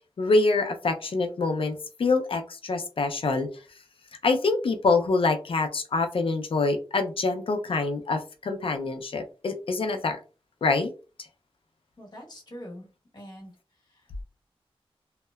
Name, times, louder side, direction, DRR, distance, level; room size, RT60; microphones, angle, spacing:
voice 1, 0.2-3.5 4.2-10.2 10.6-10.9, left 3 dB, 65° left, 6 dB, 0.5 m, -25 dB
voice 2, 12.0-12.9 13.1-13.5 13.9-14.2, equal, 45° left, -1 dB, 1.1 m, -44 dB
2.8 x 2.1 x 2.2 m, 0.34 s
wide cardioid pair, 105°, 10 cm